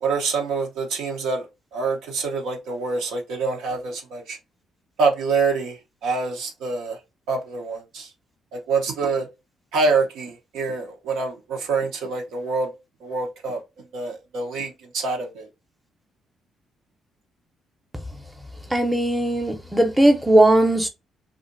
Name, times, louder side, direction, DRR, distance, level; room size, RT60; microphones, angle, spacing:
voice 1, 0.0-4.4 5.0-7.0 7.3-8.1 8.5-9.3 9.7-12.7 13.0-15.5, right 4 dB, 90° right, 0.9 m, -26 dB
voice 2, 18.7-20.9, right 1 dB, 5° right, 0.7 m, -18 dB
2.7 x 2.5 x 2.5 m
cardioid pair, 90°, 0 cm